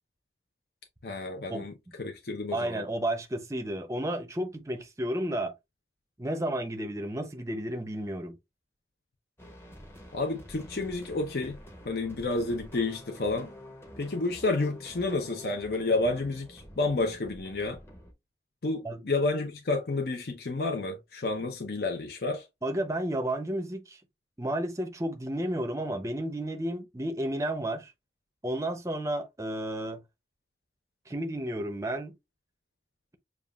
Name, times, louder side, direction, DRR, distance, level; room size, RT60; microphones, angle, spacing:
voice 1, 1.0-1.7 2.0-2.8 10.1-11.6 11.8-13.5 14.0-17.8 18.6-22.4, left 2 dB, 60° left, 0.7 m, -30 dB
voice 2, 2.5-5.5 6.2-8.4 18.8-19.0 22.6-24.0 24.4-27.9 28.4-30.0 31.1-32.1, right 1 dB, 15° right, 0.6 m, -32 dB
sound 1, 9.4-18.1, equal, 15° left, 0.8 m, -48 dB
7.0 x 2.4 x 2.3 m
head